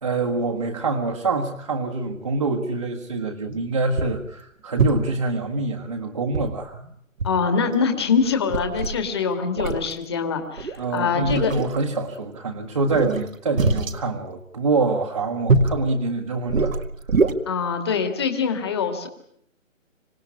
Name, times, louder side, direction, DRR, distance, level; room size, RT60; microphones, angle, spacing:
voice 1, 0.0-6.8 10.8-16.7, right 3 dB, 30° right, 1 dB, 1.6 m, -25 dB
sound 1, 3.5-3.6 4.0-4.3 4.8-5.2 6.3-6.9 7.2-7.4 7.7-7.8 8.2-9.0 9.6-9.9 10.6-10.8 11.2-11.8 12.9-14.0 15.5-15.8 16.5-17.3, right 3 dB, 80° right, 2.2 m, -23 dB
voice 2, 7.2-11.6 17.5-19.1, left 5 dB, 20° left, 5 dB, 2.2 m, -24 dB
26.5 x 18.0 x 9.8 m, 0.70 s
hypercardioid pair, 180°, 39 cm